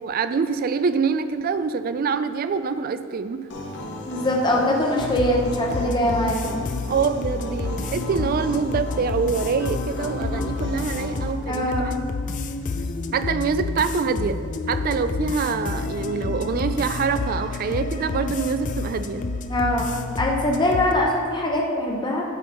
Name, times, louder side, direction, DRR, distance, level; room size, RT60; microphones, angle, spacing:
voice 1, 0.0-3.5 6.9-12.0 13.1-14.4 14.7-19.3, right 5 dB, 45° right, 11 dB, 0.3 m, -25 dB
sound 1, 3.5-11.3, left 1 dB, 55° left, 0.9 m, -35 dB
voice 2, 4.1-6.7 11.5-12.0 19.5-22.2, left 1 dB, 20° left, -1 dB, 0.8 m, -23 dB
sound 2, 5.0-20.9, left 3 dB, 35° left, 0.3 m, -29 dB
9.5 x 3.5 x 5.5 m, 2.1 s
head